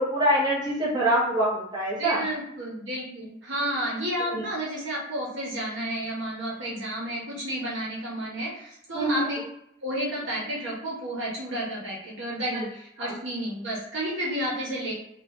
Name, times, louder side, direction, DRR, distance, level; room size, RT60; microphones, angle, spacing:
voice 1, 0.0-2.2 4.3-4.4 8.9-9.3 13.0-13.1, right 1 dB, 20° right, -8 dB, 1.3 m, -25 dB
voice 2, 2.0-9.4 9.8-14.9, right 1 dB, 70° right, -5 dB, 1.2 m, -31 dB
3.0 x 2.5 x 3.5 m, 0.77 s
head